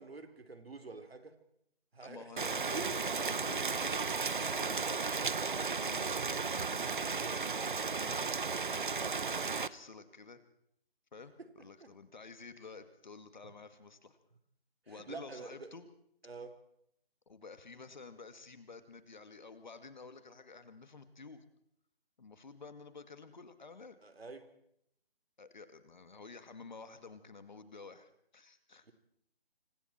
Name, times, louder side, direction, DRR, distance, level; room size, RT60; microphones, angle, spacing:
voice 1, 0.0-1.4 1.9-2.3 2.6-3.3 11.4-11.9 13.4-13.5 14.9-15.7 16.2-16.6 24.0-24.5, right 3 dB, 75° right, 3.7 m, -47 dB
voice 2, 2.0-5.0 5.5-8.9 9.1-10.4 11.1-14.2 14.9-15.9 17.3-21.4 22.2-24.0 25.4-28.9, left 4 dB, 50° left, 2.2 m, -51 dB
Rain, 2.4-9.7, right 5 dB, 55° right, 1.0 m, -34 dB
26.5 x 25.5 x 4.4 m
hypercardioid pair, 175°, 30 cm